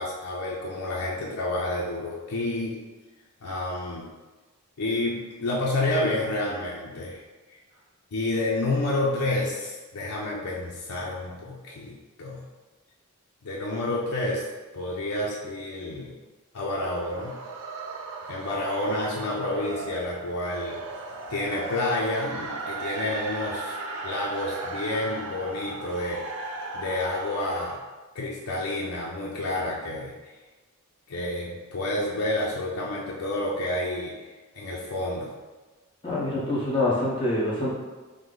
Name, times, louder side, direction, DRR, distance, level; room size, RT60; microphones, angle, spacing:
voice 1, 0.0-2.8 3.4-4.1 4.8-7.2 8.1-11.9 12.2-12.5 13.4-14.4 14.7-16.1 16.5-17.3 18.3-20.8 21.3-23.8 24.0-26.2 26.7-27.8 28.1-30.1 31.1-34.1 34.6-35.3, left 1 dB, 90° left, -5 dB, 0.6 m, -29 dB
sound 1, 16.8-27.8, right 3 dB, 75° right, 0.5 m, -36 dB
voice 2, 36.0-37.7, left 2 dB, 25° left, -7 dB, 0.9 m, -25 dB
5.0 x 2.1 x 3.8 m, 1.3 s
head